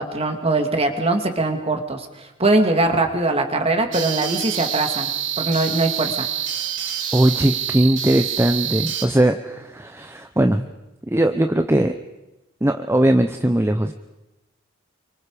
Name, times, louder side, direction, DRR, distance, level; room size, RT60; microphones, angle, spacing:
voice 1, 0.0-5.1 5.4-6.3, right 2 dB, 30° right, 5 dB, 2.4 m, -21 dB
sound 1, 3.9-9.1, right 9 dB, 65° right, 3.6 m, -27 dB
voice 2, 7.1-10.7 11.1-11.9 12.6-13.9, right 1 dB, 10° right, 6 dB, 0.8 m, -19 dB
30.0 x 24.0 x 5.0 m, 1.0 s
head